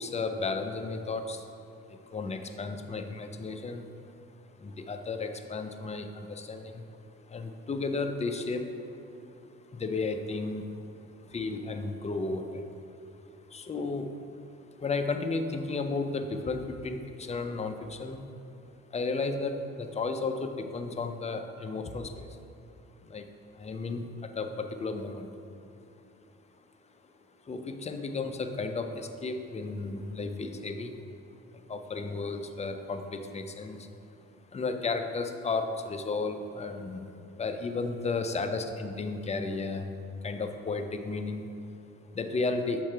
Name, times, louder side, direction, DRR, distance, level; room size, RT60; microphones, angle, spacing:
voice 1, 0.0-1.5 1.9-3.8 4.6-8.7 9.4-10.8 11.0-12.7 13.5-14.1 14.8-18.3 18.9-22.4 23.0-23.3 23.5-25.3 27.4-31.0 31.5-33.9 34.5-39.9 40.2-41.5 42.1-42.8, left 3 dB, 25° left, 6 dB, 0.4 m, -33 dB
6.4 x 3.7 x 4.5 m, 2.6 s
cardioid pair, 90°, 30 cm